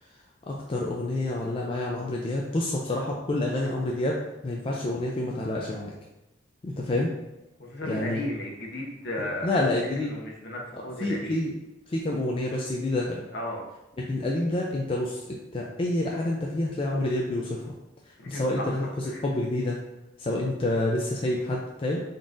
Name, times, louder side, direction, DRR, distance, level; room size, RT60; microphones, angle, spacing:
voice 1, 0.5-4.2 4.4-5.9 6.6-7.1 7.9-8.2 9.2-10.1 11.0-11.5 11.9-13.2 14.1-17.7 18.3-18.8 19.2-19.8 20.2-22.0, left 1 dB, 30° left, -2 dB, 0.4 m, -28 dB
voice 2, 7.6-9.6 10.0-11.4 13.3-13.6 18.2-18.7 19.0-19.2, left 1 dB, 60° left, -1 dB, 0.9 m, -35 dB
3.9 x 3.5 x 2.5 m, 0.93 s
head